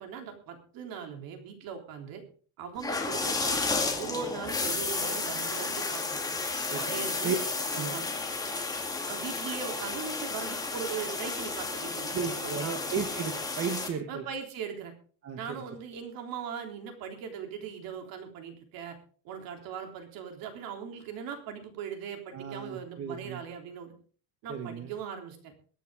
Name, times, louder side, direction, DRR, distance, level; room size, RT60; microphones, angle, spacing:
voice 1, 0.0-2.2 2.6-6.2 6.7-7.4 7.7-8.0 9.0-12.8 14.1-14.9 15.3-19.0 19.2-23.9 24.4-25.5, right 7 dB, 55° right, 4 dB, 3.5 m, -39 dB
sound 1, 2.8-13.9, left 3 dB, 10° left, 2.0 m, -32 dB
voice 2, 12.1-14.2 15.2-15.6 22.3-23.4 24.5-24.9, right 6 dB, 35° right, 5 dB, 1.6 m, -34 dB
23.0 x 9.3 x 3.7 m, 0.43 s
cardioid pair, 165°, 41 cm